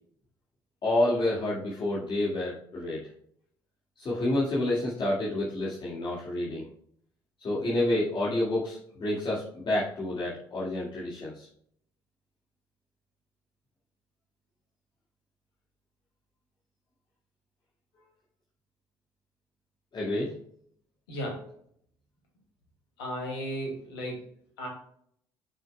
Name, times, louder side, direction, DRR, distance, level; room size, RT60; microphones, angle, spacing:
voice 1, 0.8-3.1 4.0-6.7 7.4-11.5 19.9-20.3, left 1 dB, 40° left, -7 dB, 2.1 m, -29 dB
voice 2, 21.1-21.5 23.0-24.3 24.6-24.7, equal, 75° left, -1 dB, 2.5 m, -35 dB
8.4 x 6.3 x 2.3 m, 0.65 s
figure-of-eight pair, 50°, 13 cm